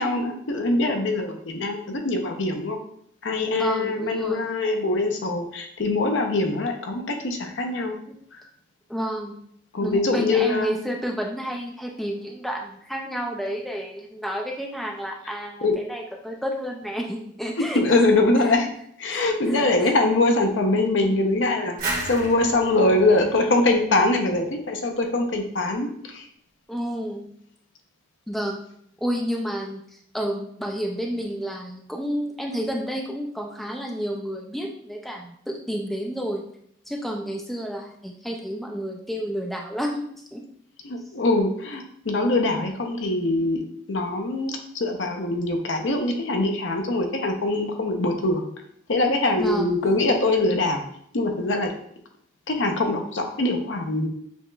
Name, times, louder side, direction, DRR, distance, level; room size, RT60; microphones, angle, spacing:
voice 1, 0.0-2.8 3.2-7.9 8.3-8.4 9.7-10.8 15.6-15.8 17.7-18.7 19.0-26.3 40.8-43.6 43.9-48.4 48.9-50.8 51.1-51.7 52.5-54.1, left 2 dB, 80° left, 4 dB, 0.7 m, -23 dB
voice 2, 3.6-4.5 8.9-9.3 9.8-18.1 19.1-19.9 26.7-27.3 28.3-28.6 29.0-36.4 36.9-40.4 49.4-49.7, equal, ahead, 0 dB, 0.3 m, -30 dB
sound 1, 21.8-24.5, right 2 dB, 40° right, 1.5 m, -33 dB
6.9 x 3.0 x 2.3 m, 0.68 s
head